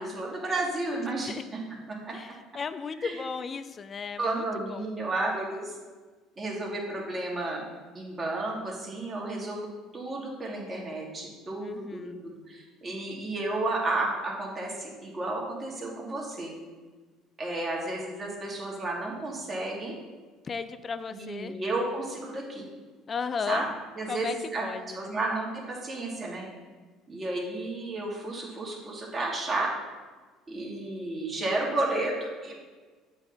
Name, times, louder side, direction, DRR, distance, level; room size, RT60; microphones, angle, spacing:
voice 1, 0.0-1.6 1.9-2.2 2.9-3.2 4.2-5.7 6.4-7.7 7.9-9.7 9.9-16.5 17.4-20.0 21.1-22.7 23.5-23.7 24.0-24.6 24.9-26.5 27.1-29.7 30.5-32.6, right 2 dB, 30° right, -3 dB, 2.5 m, -32 dB
voice 2, 2.1-4.9 11.6-12.2 20.4-21.6 23.1-23.6 24.1-24.3 24.6-25.1, left 5 dB, 35° left, 12 dB, 0.4 m, -35 dB
7.6 x 4.1 x 5.9 m, 1.4 s
hypercardioid pair, 65°, 0 cm